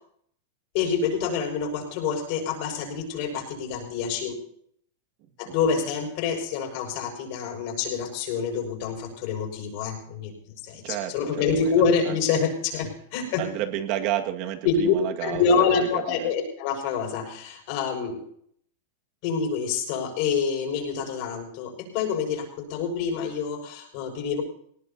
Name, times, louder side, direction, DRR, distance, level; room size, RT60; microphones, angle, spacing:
voice 1, 0.7-4.4 5.4-13.4 14.6-14.9 15.2-18.2 19.2-24.4, left 6 dB, 50° left, 3 dB, 6.0 m, -27 dB
voice 2, 5.2-5.6 10.8-12.2 13.4-16.3, right 11 dB, 45° right, 4 dB, 2.0 m, -32 dB
19.0 x 19.0 x 2.9 m, 0.63 s
supercardioid pair, 150°, 0 cm